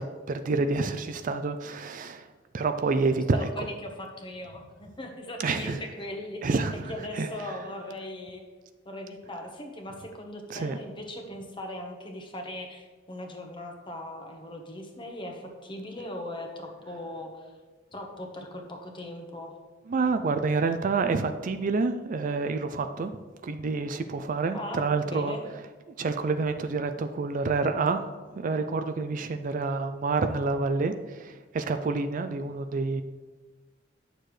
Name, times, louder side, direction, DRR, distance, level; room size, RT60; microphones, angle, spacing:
voice 1, 0.0-2.3 2.5-3.7 5.4-5.8 6.4-7.5 10.5-10.8 19.9-23.1 23.4-25.4 26.0-28.0 28.3-33.0, right 4 dB, 45° right, 9 dB, 0.4 m, -28 dB
voice 2, 3.3-6.6 6.9-8.4 8.8-17.5 17.9-19.6 24.5-25.4, left 1 dB, 25° left, 2 dB, 1.0 m, -39 dB
9.4 x 6.6 x 3.2 m, 1.3 s
head